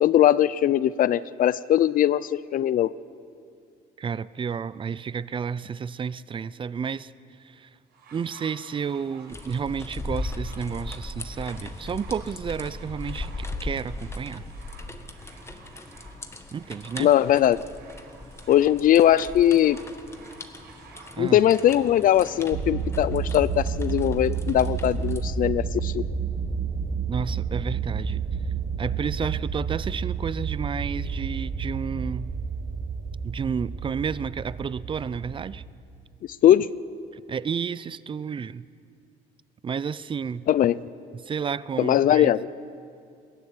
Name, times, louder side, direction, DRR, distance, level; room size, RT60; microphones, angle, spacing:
voice 1, 0.0-2.9 17.0-17.6 18.5-19.8 21.2-26.0 36.4-36.7 40.5-40.8 41.8-42.5, left 11 dB, 55° left, 0.5 m, -20 dB
voice 2, 4.0-7.1 7.4-7.7 8.1-14.4 16.5-17.1 21.1-21.4 27.1-28.2 28.8-32.3 33.2-35.6 37.1-38.6 39.6-40.5 41.1-42.3, right 6 dB, 30° right, 0.5 m, -31 dB
sound 1, 7.9-22.5 23.4-23.5, right 4 dB, 75° right, 5.1 m, -51 dB
sound 2, 9.3-25.2, left 2 dB, 15° left, 1.6 m, -38 dB
sound 3, 22.5-35.7, right 5 dB, 45° right, 1.2 m, -30 dB
21.5 x 15.0 x 9.9 m
cardioid pair, 110°, 17 cm